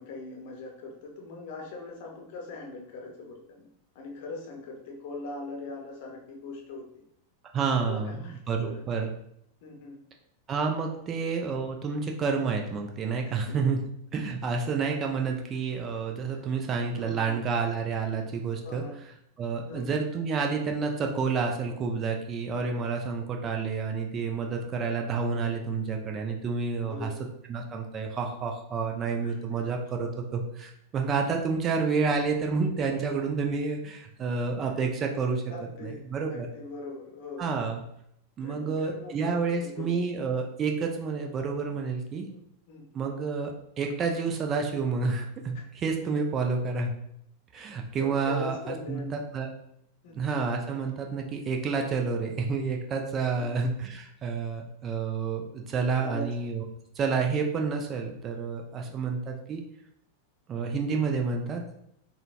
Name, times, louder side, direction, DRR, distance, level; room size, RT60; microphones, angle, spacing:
voice 1, 0.0-3.7 3.9-6.9 7.9-8.8 9.6-10.0 13.5-13.6 16.3-16.4 16.9-17.3 18.6-19.0 19.6-20.0 26.8-27.2 29.2-29.4 35.5-36.0 36.3-37.5 38.4-39.3 39.6-40.0 42.3-42.4 42.7-42.9 45.5-45.6 48.0-49.2 50.0-50.3 53.3-53.6 56.0-56.3 58.8-58.9 59.3-59.4, left 3 dB, 50° left, 0 dB, 0.7 m, -41 dB
voice 2, 7.5-8.2 8.5-9.1 10.5-13.8 14.1-18.8 19.4-27.1 27.5-35.4 35.8-36.5 37.4-37.8 38.4-42.3 42.9-46.9 47.5-49.5 50.1-56.6 57.0-59.6 60.5-61.7, right 5 dB, 25° right, 2 dB, 0.4 m, -29 dB
3.8 x 2.1 x 2.4 m, 0.74 s
figure-of-eight pair, 90°, 0 cm